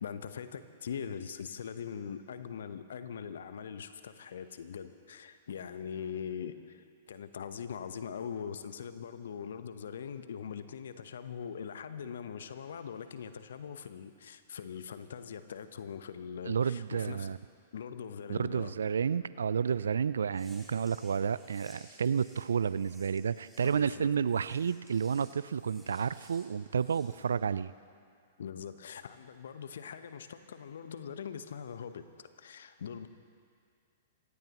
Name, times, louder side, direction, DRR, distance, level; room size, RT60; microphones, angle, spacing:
voice 1, 0.0-17.3 17.7-18.8 23.6-24.1 28.4-33.1, left 7 dB, 65° left, 11 dB, 0.9 m, -42 dB
voice 2, 16.5-17.4 18.3-27.7, right 7 dB, 75° right, 17 dB, 0.4 m, -31 dB
sound 1, 20.3-27.2, right 1 dB, 5° right, 2.8 m, -59 dB
26.5 x 17.0 x 3.0 m, 2.3 s
figure-of-eight pair, 110°, 0 cm